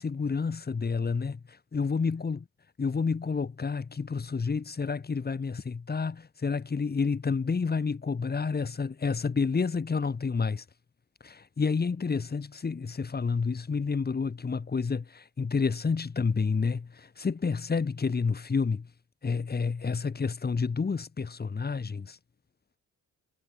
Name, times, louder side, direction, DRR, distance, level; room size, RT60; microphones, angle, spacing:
voice 1, 0.0-2.4 2.8-10.6 11.2-18.9 19.2-22.2, left 5 dB, 30° left, 3.7 m, -29 dB
cardioid pair, 90°, 30 cm